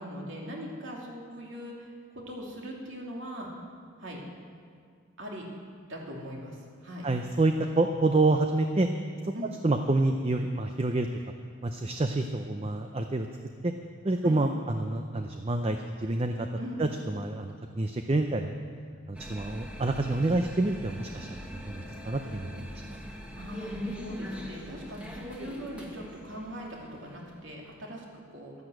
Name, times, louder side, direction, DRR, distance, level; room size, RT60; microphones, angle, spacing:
voice 1, 0.0-3.5 4.0-4.2 5.2-5.4 5.9-7.1 9.3-9.5 14.2-14.4 16.5-16.8 23.3-28.5, equal, 60° right, -2 dB, 2.6 m, -40 dB
voice 2, 7.0-8.9 9.2-9.3 9.6-11.2 11.6-13.3 13.6-13.7 14.0-16.5 16.8-18.6 19.1-22.8, right 2 dB, 25° right, 6 dB, 0.5 m, -28 dB
sound 1, 19.1-27.8, equal, 5° right, 1.2 m, -42 dB
12.0 x 10.5 x 7.8 m, 2.1 s
head